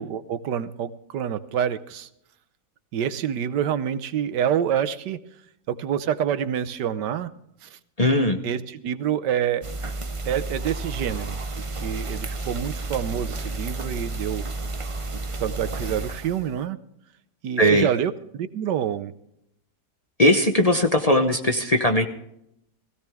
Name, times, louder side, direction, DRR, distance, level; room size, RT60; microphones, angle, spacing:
voice 1, 0.0-2.1 2.9-5.2 5.7-7.3 7.6-7.8 8.4-9.7 10.2-11.4 11.7-14.4 15.4-16.8 17.4-19.1, right 9 dB, 90° right, 13 dB, 1.5 m, -27 dB
voice 2, 8.0-8.4 17.6-17.9 20.2-22.1, left 1 dB, 30° left, 4 dB, 0.7 m, -19 dB
sound 1, 9.6-16.6, right 2 dB, 45° right, 0.4 m, -32 dB
17.0 x 17.0 x 3.5 m, 0.76 s
omnidirectional pair, 1.8 m